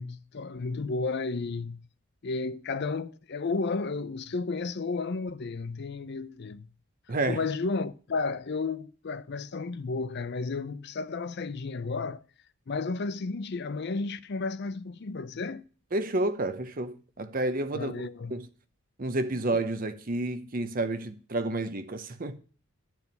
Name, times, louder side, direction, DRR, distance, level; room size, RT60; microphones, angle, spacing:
voice 1, 0.0-1.9 2.2-6.7 7.3-12.2 12.7-15.6 17.7-18.3, left 4 dB, 50° left, 0.5 m, -32 dB
voice 2, 7.1-7.4 15.9-18.0 18.3-18.5 19.0-22.4, right 2 dB, 40° right, 0.8 m, -30 dB
12.5 x 4.7 x 5.3 m
head